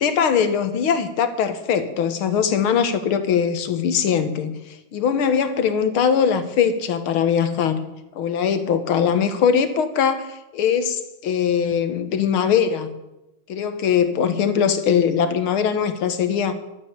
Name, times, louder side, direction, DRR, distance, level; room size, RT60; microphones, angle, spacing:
voice 1, 0.0-4.5 4.9-7.8 8.2-13.0 13.5-16.5, left 7 dB, 75° left, 10 dB, 2.0 m, -21 dB
11.5 x 9.1 x 8.7 m, 0.94 s
omnidirectional pair, 2.4 m